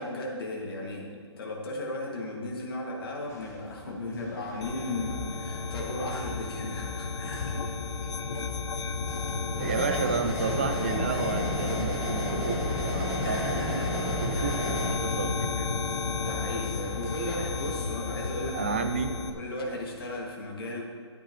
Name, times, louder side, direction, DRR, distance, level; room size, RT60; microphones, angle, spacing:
voice 1, 0.0-7.6 13.2-14.6 16.2-20.8, left 1 dB, 50° left, -2 dB, 2.4 m, -36 dB
sound 1, 3.3-20.2, left 3 dB, 35° left, 1.2 m, -48 dB
sound 2, 4.6-19.3, left 4 dB, 75° left, 0.8 m, -33 dB
sound 3, 9.5-14.9, equal, 5° right, 1.1 m, -32 dB
voice 2, 9.6-13.8 14.2-15.7 18.5-19.1, right 5 dB, 25° right, 8 dB, 0.4 m, -32 dB
14.0 x 8.6 x 3.3 m, 2.2 s
hypercardioid pair, 180°, 15 cm